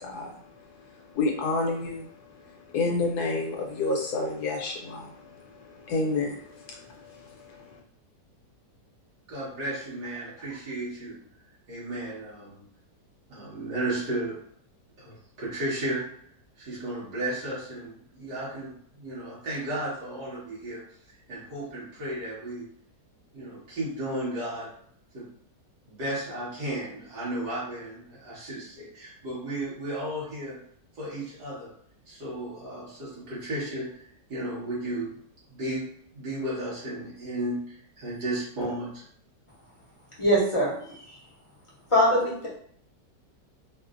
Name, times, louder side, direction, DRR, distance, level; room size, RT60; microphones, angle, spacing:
voice 1, 0.0-7.8, left 3 dB, 75° left, 1 dB, 1.1 m, -31 dB
voice 2, 9.3-11.2 11.7-12.6 13.3-14.4 15.0-16.1 16.6-20.8 21.3-22.7 23.3-24.7 25.1-25.3 25.9-30.6 31.0-31.7 32.1-35.2 35.5-35.9 36.1-39.0, right 1 dB, 70° right, -8 dB, 2.1 m, -34 dB
voice 3, 40.2-41.2 41.9-42.5, equal, 35° left, -5 dB, 0.5 m, -23 dB
4.1 x 2.0 x 2.5 m, 0.62 s
omnidirectional pair, 1.8 m